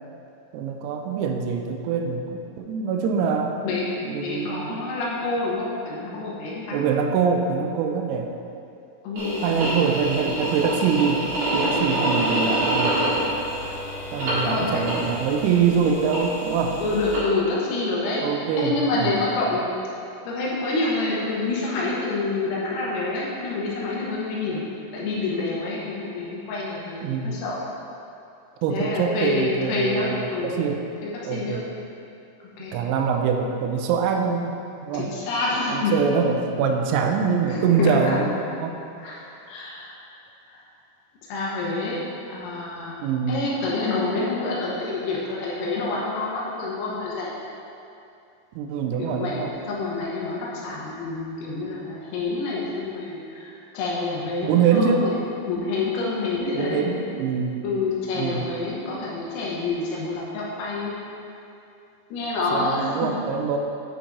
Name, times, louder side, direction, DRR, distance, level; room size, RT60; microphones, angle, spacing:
voice 1, 0.5-3.5 4.1-4.9 6.7-8.3 9.4-11.3 11.5-13.1 14.1-16.8 18.2-19.2 27.0-27.4 28.6-30.8 31.2-31.6 32.7-34.6 34.9-35.1 35.7-38.7 43.0-43.5 48.6-49.5 54.4-55.1 56.5-57.6 58.1-58.5 62.5-63.6, right 6 dB, 85° right, 4 dB, 3.3 m, -24 dB
voice 2, 4.2-6.8 9.0-9.8 14.5-14.8 16.8-18.2 18.6-19.7 20.2-24.6 24.9-27.6 28.7-30.5 31.0-31.6 32.6-32.8 34.9-35.9 37.5-38.2 39.0-39.2 39.5-39.9 40.5-40.6 41.2-42.0 42.3-43.0 43.3-47.3 49.0-55.2 55.5-56.9 57.6-60.9 62.1-63.1, left 3 dB, 85° left, -5 dB, 3.8 m, -27 dB
sound 1, 9.2-17.2, right 1 dB, 65° right, 1.6 m, -27 dB
Bowed string instrument, 12.2-16.6, left 6 dB, 60° left, 2.0 m, -43 dB
10.0 x 5.9 x 2.8 m, 2.7 s
omnidirectional pair, 6.0 m